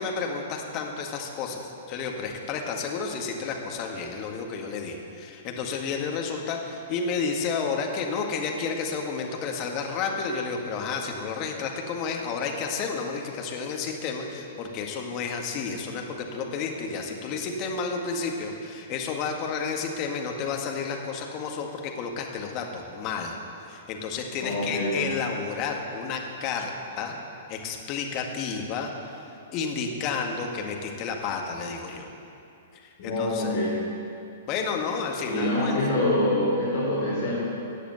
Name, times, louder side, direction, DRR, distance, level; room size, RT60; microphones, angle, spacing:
voice 1, 0.0-23.4 23.6-27.2 27.5-29.2 29.5-32.1 32.8-33.6 34.5-35.7, left 5 dB, 35° left, 1 dB, 1.9 m, -31 dB
voice 2, 24.4-25.0 33.0-33.8 35.2-37.4, left 1 dB, 50° left, -8 dB, 4.2 m, -25 dB
15.0 x 8.3 x 8.0 m, 2.7 s
figure-of-eight pair, 110°, 0 cm